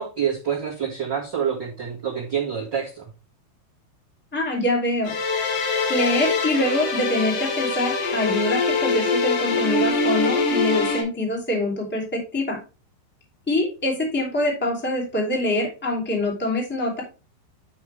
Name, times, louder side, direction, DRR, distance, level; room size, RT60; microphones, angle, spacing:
voice 1, 0.0-3.1, right 8 dB, 60° right, -2 dB, 1.1 m, -27 dB
voice 2, 4.3-5.1 5.9-12.6 13.5-17.0, left 1 dB, 5° left, -2 dB, 1.2 m, -24 dB
sound 1, 5.1-11.0, left 3 dB, 90° left, 5.0 m, -23 dB
12.0 x 5.3 x 3.4 m, 0.32 s
omnidirectional pair, 5.5 m